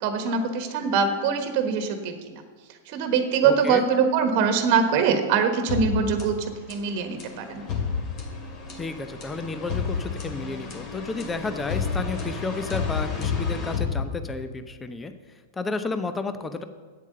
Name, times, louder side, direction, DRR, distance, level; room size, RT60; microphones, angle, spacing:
voice 1, 0.0-2.4 2.9-7.6, right 6 dB, 45° right, 6 dB, 1.3 m, -23 dB
voice 2, 3.4-3.8 8.8-15.1 15.5-16.6, left 3 dB, 15° left, 10 dB, 0.7 m, -32 dB
sound 1, 5.7-14.6, left 5 dB, 35° left, 2.5 m, -31 dB
8.5 x 8.3 x 6.7 m, 1.4 s
figure-of-eight pair, 100°, 0 cm